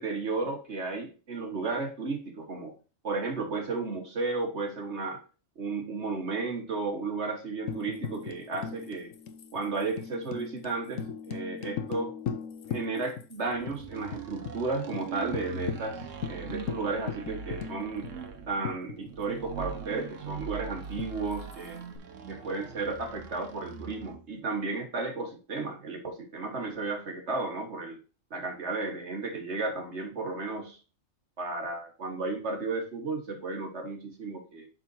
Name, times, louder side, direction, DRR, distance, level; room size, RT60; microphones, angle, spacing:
voice 1, 0.0-2.8 3.0-5.2 5.5-9.1 9.5-12.1 12.7-18.1 18.5-21.8 22.3-28.0 28.3-30.8 31.4-34.7, right 3 dB, 60° right, 4 dB, 1.7 m, -33 dB
Tambourine, 7.7-13.4 13.7-13.8 14.1-14.6 14.9-15.0 15.3-19.5 21.0-22.0, left 7 dB, 80° left, 1.1 m, -39 dB
sound 1, 13.5-24.3, right 5 dB, 75° right, 1.3 m, -41 dB
11.5 x 4.0 x 2.7 m, 0.34 s
omnidirectional pair, 1.3 m